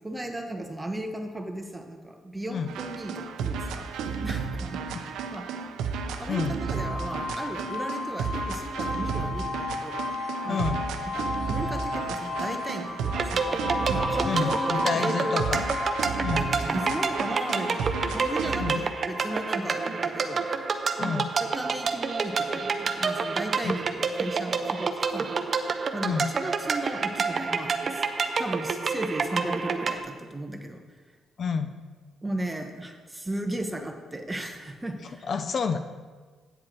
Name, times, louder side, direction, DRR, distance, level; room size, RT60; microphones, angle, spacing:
voice 1, 0.0-3.9 4.2-4.8 5.3-5.5 6.1-10.0 10.4-10.7 11.1-13.6 13.9-15.4 16.3-20.6 21.0-25.4 25.9-28.0 28.4-30.8 32.2-35.3, right 1 dB, 15° right, 4 dB, 1.1 m, -35 dB
sound 1, 2.7-18.8, right 5 dB, 85° right, 0.6 m, -33 dB
voice 2, 6.3-6.6 10.5-10.8 14.2-15.6 16.2-16.5 18.6-18.8 21.0-21.3 23.6-23.8 26.0-26.3 31.4-31.8 35.3-35.8, left 6 dB, 50° left, 8 dB, 0.5 m, -29 dB
sound 2, 6.7-21.6, left 3 dB, 25° left, 2.5 m, -35 dB
sound 3, 13.1-30.0, right 5 dB, 45° right, 0.7 m, -28 dB
8.9 x 7.6 x 4.5 m, 1.4 s
cardioid pair, 90°, 0 cm